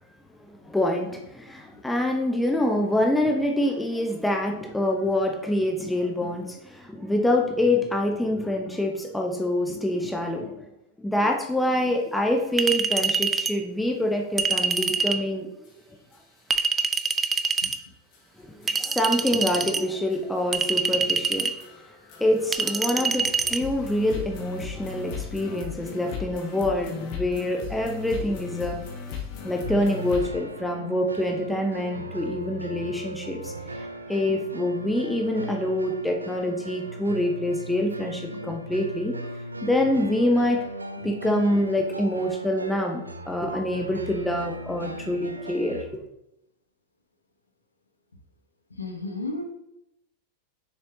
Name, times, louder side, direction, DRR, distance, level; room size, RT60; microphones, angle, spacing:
voice 1, 0.5-10.7 11.0-15.5 18.6-21.8 22.2-28.8 29.4-39.3 39.6-40.6 41.0-45.9, left 1 dB, 5° left, 2 dB, 0.8 m, -26 dB
Chink clink, 12.6-13.6 14.4-15.2 16.5-17.8 18.7-19.8 20.5-21.6 22.5-23.6, right 5 dB, 15° right, 0.4 m, -25 dB
sound 1, 15.6-15.7 16.1-16.2 16.6-16.7 17.1-17.2 17.6-17.7 18.1-18.2 18.6-30.3, left 7 dB, 45° left, 1.4 m, -38 dB
sound 2, 29.6-45.8, right 1 dB, 80° right, 0.5 m, -38 dB
voice 2, 48.8-49.4, left 2 dB, 80° left, 4 dB, 1.1 m, -32 dB
6.8 x 6.6 x 2.9 m, 0.84 s
figure-of-eight pair, 90°, 0 cm